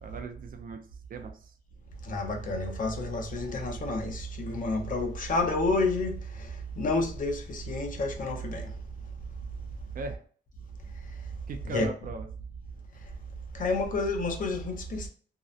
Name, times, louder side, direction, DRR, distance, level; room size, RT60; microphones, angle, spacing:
voice 1, 0.0-1.5 9.9-10.2 11.5-12.3, right 4 dB, 55° right, 0.4 m, -39 dB
voice 2, 2.0-8.7 11.6-11.9 13.5-15.1, left 2 dB, 50° left, 0.6 m, -30 dB
2.7 x 2.1 x 2.4 m
wide cardioid pair, 150°, 18 cm